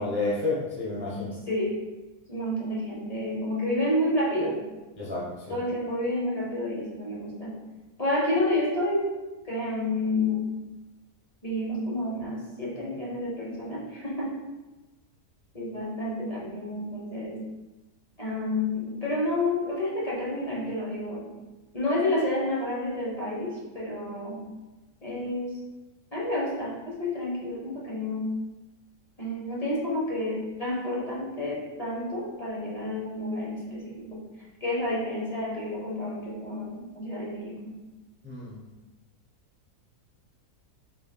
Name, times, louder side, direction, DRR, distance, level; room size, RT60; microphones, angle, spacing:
voice 1, 0.0-1.4 5.0-5.6 38.2-38.6, left 3 dB, 20° right, -6 dB, 0.3 m, -30 dB
voice 2, 2.3-4.6 5.5-7.6 8.0-9.1 9.4-10.5 11.4-14.3 15.5-17.4 18.2-21.3 21.7-24.4 25.0-25.6 26.1-28.3 29.2-37.7, left 1 dB, 30° left, -5 dB, 0.9 m, -30 dB
5.3 x 3.4 x 2.3 m, 1.1 s
omnidirectional pair, 1.7 m